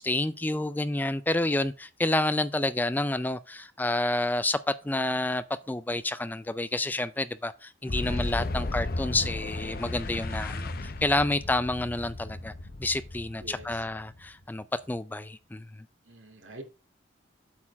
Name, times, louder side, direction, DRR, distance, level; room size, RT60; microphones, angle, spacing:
voice 1, 0.0-12.5 12.8-15.7, left 2 dB, 10° left, 0.3 m, -29 dB
Boom, 7.9-14.4, left 2 dB, 50° left, 0.7 m, -34 dB
voice 2, 13.4-13.8 16.1-16.6, right 1 dB, 85° right, 2.4 m, -45 dB
8.5 x 4.4 x 7.0 m
head